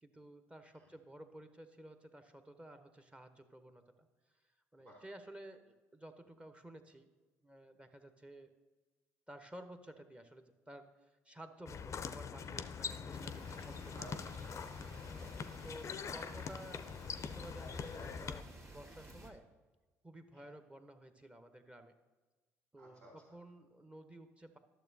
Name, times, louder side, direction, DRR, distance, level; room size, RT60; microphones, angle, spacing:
voice 1, 0.0-3.8 4.7-7.1 7.4-8.5 9.3-14.0 15.1-16.9 17.2-19.5 20.0-21.9 22.7-24.6, right 1 dB, 15° right, 8 dB, 0.8 m, -54 dB
sound 1, 11.7-18.4, left 6 dB, 40° left, 0.5 m, -43 dB
sound 2, 13.1-19.3, right 1 dB, 40° right, 1.5 m, -55 dB
voice 2, 13.9-15.1 20.3-20.5 22.8-23.2, right 1 dB, 80° right, -5 dB, 2.7 m, -57 dB
12.0 x 6.8 x 2.7 m, 1.2 s
hypercardioid pair, 55°, 8 cm